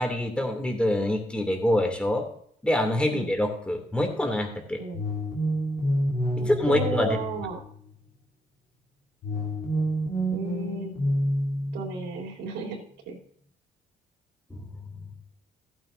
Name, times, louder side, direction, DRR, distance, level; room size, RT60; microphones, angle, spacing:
voice 1, 0.0-2.2 2.6-4.8 6.5-7.2 14.5-14.6, left 1 dB, 5° left, 3 dB, 2.7 m, -25 dB
sound 1, 4.9-8.1 9.2-12.2, equal, 75° left, 3.4 m, -28 dB
voice 2, 6.4-7.6 10.3-10.9 11.7-13.2, right 5 dB, 85° right, 0 dB, 3.4 m, -34 dB
15.0 x 9.1 x 2.7 m, 0.62 s
cardioid pair, 110°, 17 cm